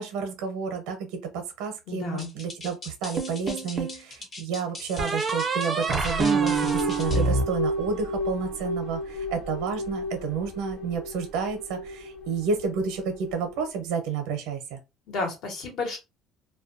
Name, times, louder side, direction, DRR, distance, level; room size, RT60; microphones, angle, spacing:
voice 1, 0.0-14.8, right 6 dB, 85° right, 0.6 m, -30 dB
voice 2, 1.9-2.3 15.1-16.0, left 3 dB, 60° left, 1.0 m, -31 dB
sound 1, 2.2-7.3, left 2 dB, 30° left, 0.6 m, -41 dB
sound 2, 3.2-4.0 5.0-8.3, right 4 dB, 25° right, 0.4 m, -26 dB
sound 3, 6.2-13.7, left 2 dB, 85° left, 0.5 m, -34 dB
2.2 x 2.2 x 2.5 m
cardioid pair, 130°, 0 cm